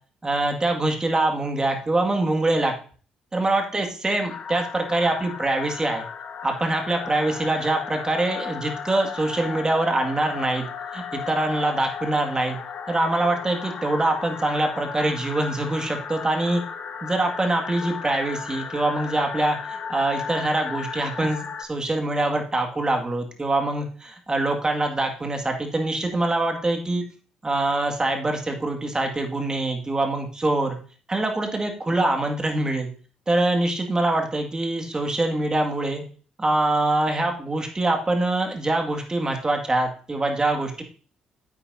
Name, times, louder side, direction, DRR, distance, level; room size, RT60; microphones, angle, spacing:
voice 1, 0.2-2.7 3.3-6.0 6.4-10.7 10.9-12.6 12.9-16.6 17.0-27.0 27.4-30.8 31.1-32.9 33.3-36.0 36.4-40.8, right 2 dB, 25° right, 3 dB, 2.2 m, -24 dB
sound 1, 4.3-21.6, left 6 dB, 55° left, 1.0 m, -35 dB
10.0 x 8.5 x 2.8 m, 0.40 s
hypercardioid pair, 50°, 3 cm